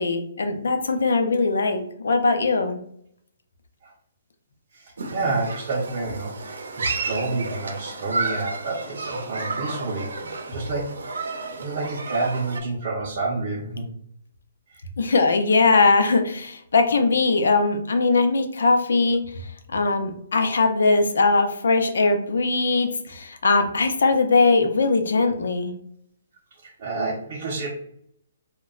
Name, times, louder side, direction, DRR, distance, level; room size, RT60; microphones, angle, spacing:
voice 1, 0.0-2.8 15.0-19.4 19.7-25.7, left 3 dB, 75° left, 6 dB, 0.5 m, -20 dB
voice 2, 4.7-10.1 10.5-11.3 11.5-13.9 14.7-14.8 26.6-27.7, right 3 dB, 30° right, -6 dB, 0.5 m, -29 dB
Human group actions, 5.0-12.6, right 3 dB, 85° right, 0.6 m, -32 dB
2.2 x 2.0 x 3.7 m, 0.68 s
hypercardioid pair, 180°, 0 cm